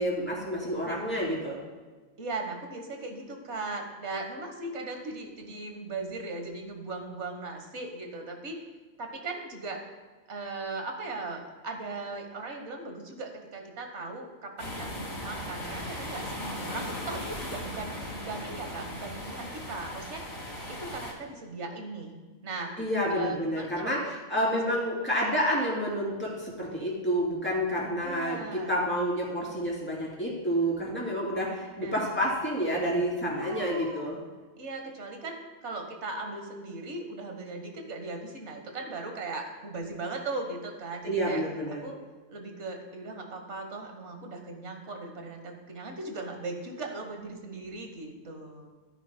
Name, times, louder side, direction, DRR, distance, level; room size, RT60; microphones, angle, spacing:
voice 1, 0.0-1.6 22.8-34.2 41.0-41.8, equal, 10° left, -5 dB, 3.0 m, -29 dB
voice 2, 0.8-1.3 2.2-8.6 9.0-9.8 10.3-20.3 20.7-22.1 22.4-22.7 23.1-23.9 24.3-24.6 28.0-28.7 31.7-32.2 33.3-34.1 34.6-35.4 35.6-41.4 41.7-42.0 42.3-48.7, right 3 dB, 70° right, 3 dB, 1.6 m, -38 dB
sound 1, 14.6-21.1, left 1 dB, 80° left, 3.5 m, -38 dB
14.5 x 9.2 x 2.2 m, 1.3 s
omnidirectional pair, 1.2 m